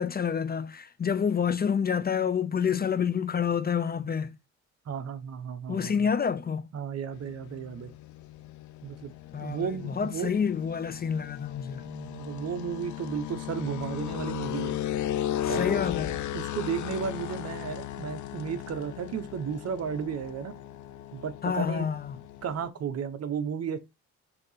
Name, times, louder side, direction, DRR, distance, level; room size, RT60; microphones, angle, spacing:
voice 1, 0.0-4.3 5.7-6.6 9.3-11.8 15.4-16.2 21.4-22.2, left 7 dB, 30° left, 0.6 m, -28 dB
voice 2, 4.8-6.1 6.7-7.9 8.8-9.1 9.4-10.3 11.8-14.8 15.5-15.8 16.3-20.6 21.1-21.9 22.4-23.8, right 7 dB, 55° right, 1.0 m, -34 dB
sound 1, 7.1-22.7, left 12 dB, 75° left, 0.6 m, -36 dB
6.8 x 2.9 x 5.6 m
cardioid pair, 90°, 30 cm